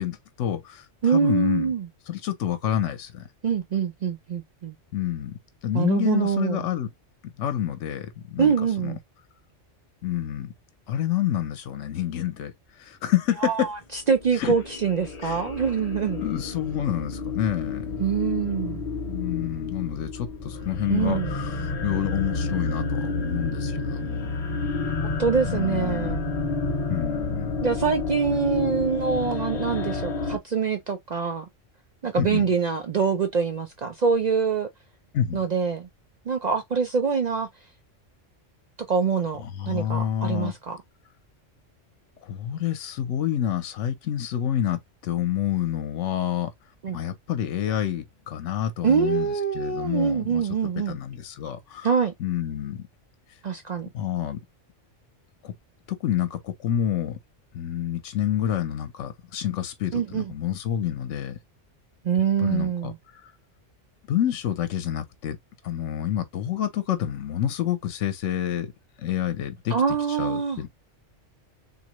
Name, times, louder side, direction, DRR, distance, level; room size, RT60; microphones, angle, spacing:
voice 1, 0.0-1.7 2.1-3.3 4.9-6.9 7.2-8.5 8.8-9.0 10.0-10.5 10.9-12.5 12.8-13.7 14.4-14.5 15.2-15.4 16.2-18.0 19.1-24.3 25.4-26.2 26.9-27.5 32.2-32.5 35.1-35.4 39.4-40.5 42.2-46.5 46.9-51.9 52.2-52.9 53.9-54.4 55.4-55.5 55.9-57.2 57.5-61.4 62.4-62.9 64.1-65.4 65.6-68.7 69.0-69.8 70.1-70.7, left 11 dB, 75° left, 1.0 m, -28 dB
voice 2, 1.0-1.9 3.4-4.8 5.7-6.6 8.4-9.0 13.4-16.2 18.0-18.8 20.9-21.3 24.7-26.3 27.6-31.4 32.0-34.7 35.3-35.9 36.3-37.5 38.9-39.4 39.7-40.8 46.8-47.0 48.8-51.0 51.8-52.1 53.4-53.9 59.9-60.3 62.0-63.0 69.7-70.6, right 6 dB, 60° right, 0.4 m, -25 dB
sound 1, 14.1-30.4, left 3 dB, 40° left, 0.6 m, -30 dB
3.6 x 2.7 x 3.0 m
omnidirectional pair, 1.3 m